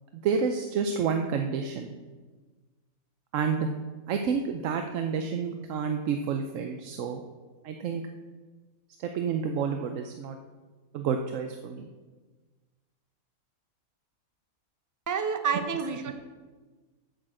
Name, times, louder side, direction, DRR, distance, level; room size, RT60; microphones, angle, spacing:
voice 1, 0.1-1.9 3.3-3.7 4.1-7.2 7.6-8.0 9.0-10.4 10.9-11.9 16.0-16.1, right 6 dB, 65° right, 5 dB, 1.0 m, -29 dB
voice 2, 15.1-16.1, right 6 dB, 25° right, 7 dB, 0.4 m, -29 dB
8.9 x 6.4 x 7.5 m, 1.3 s
omnidirectional pair, 1.5 m